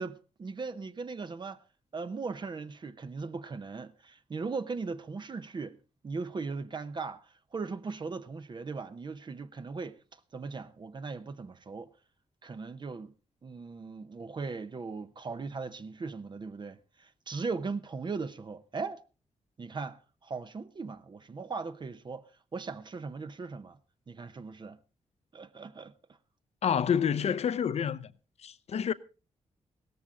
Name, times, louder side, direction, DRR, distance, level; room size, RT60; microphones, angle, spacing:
voice 1, 0.0-1.6 1.9-5.8 6.0-11.9 12.4-13.1 13.4-19.0 19.6-22.2 22.5-23.8 24.1-24.8 25.3-25.9, right 4 dB, 40° right, 0.8 m, -38 dB
voice 2, 26.6-28.1 28.4-28.9, left 8 dB, 65° left, 0.7 m, -28 dB
16.5 x 13.5 x 3.8 m
cardioid pair, 95°, 12 cm